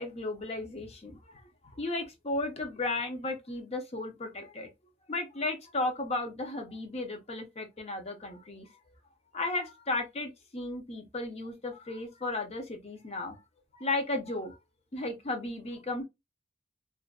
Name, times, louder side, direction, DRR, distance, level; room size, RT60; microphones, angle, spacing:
voice 1, 0.0-4.7 5.1-8.7 9.3-13.4 13.7-14.6 14.9-16.0, left 2 dB, 35° left, 0.7 m, -35 dB
2.5 x 2.1 x 2.3 m
head